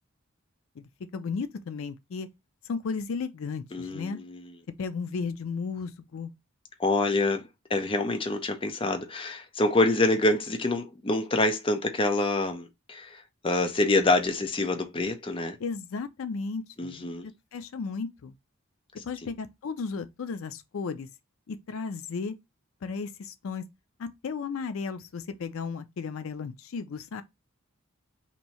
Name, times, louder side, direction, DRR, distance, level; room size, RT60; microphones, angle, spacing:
voice 1, 0.8-2.3 2.6-4.2 4.8-6.3 15.6-18.3 19.0-21.1 21.5-22.4 22.8-23.7 24.0-27.2, left 5 dB, 75° left, 0.4 m, -34 dB
voice 2, 3.7-4.5 6.8-15.6 16.8-17.3, left 2 dB, 25° left, 0.5 m, -26 dB
2.9 x 2.6 x 4.2 m
head